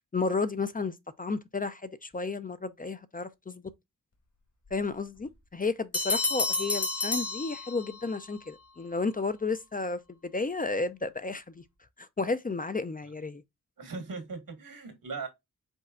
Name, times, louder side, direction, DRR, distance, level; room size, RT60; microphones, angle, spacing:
voice 1, 0.1-3.6 4.7-11.6 12.0-13.4, left 3 dB, 25° left, 0.4 m, -32 dB
Bell, 5.9-8.2, left 3 dB, 50° left, 1.6 m, -30 dB
voice 2, 13.8-15.3, right 4 dB, 90° right, 1.8 m, -39 dB
5.3 x 4.1 x 2.3 m
wide cardioid pair, 110°, 33 cm